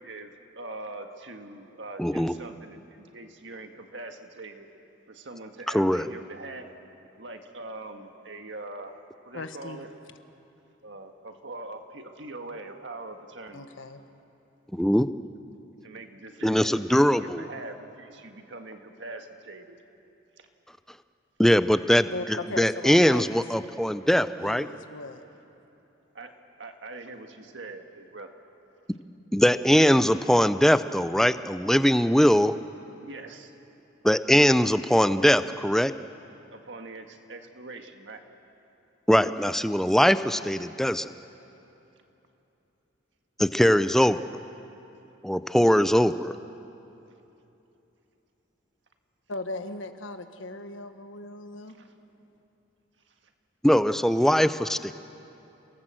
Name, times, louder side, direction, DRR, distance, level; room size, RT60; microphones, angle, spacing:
voice 1, 0.0-4.7 5.1-6.7 7.2-9.9 10.8-13.6 15.8-19.8 20.4-20.5 26.1-26.3 26.6-28.3 33.0-33.5 36.5-38.2 51.7-51.9, right 2 dB, 70° right, 5 dB, 1.7 m, -42 dB
voice 2, 2.0-2.3 5.7-6.1 14.7-15.1 16.4-17.4 21.4-24.7 29.3-32.5 34.0-35.9 39.1-41.1 43.4-44.2 45.2-46.3 53.6-54.9, equal, ahead, 12 dB, 0.4 m, -21 dB
voice 3, 9.3-9.9 13.5-14.0 22.1-23.2 24.4-25.2 49.3-51.8, left 2 dB, 90° left, 8 dB, 1.4 m, -37 dB
29.0 x 18.5 x 7.6 m, 2.9 s
head